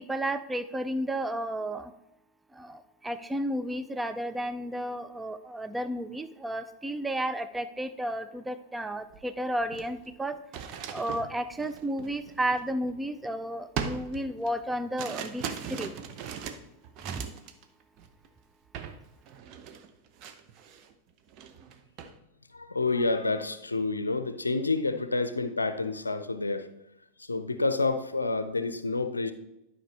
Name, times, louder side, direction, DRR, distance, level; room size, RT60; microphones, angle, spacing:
voice 1, 0.0-1.9 2.5-10.4 10.9-15.9 17.1-17.2, right 1 dB, 10° right, 11 dB, 0.4 m, -32 dB
sound 1, 9.1-9.2 9.6-13.2 13.8-17.6 18.0-18.3 18.7-19.0 19.3-20.9 21.3-22.1, right 7 dB, 40° right, 0.7 m, -39 dB
voice 2, 22.5-26.7 27.2-29.3, left 3 dB, 80° left, 11 dB, 0.5 m, -29 dB
11.5 x 5.4 x 3.2 m, 0.90 s
figure-of-eight pair, 90°, 0 cm